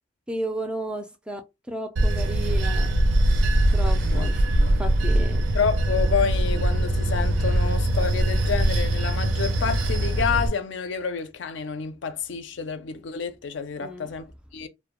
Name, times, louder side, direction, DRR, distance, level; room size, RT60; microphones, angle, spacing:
voice 1, 0.3-1.4 1.7-2.9 3.7-4.4 4.8-5.5 13.8-14.1, equal, 5° right, 0.3 m, -33 dB
Bell / Train, 2.0-10.5, right 1 dB, 75° right, 0.5 m, -22 dB
voice 2, 4.6-4.9 5.5-14.7, left 6 dB, 75° left, 0.4 m, -29 dB
2.1 x 2.1 x 2.9 m
head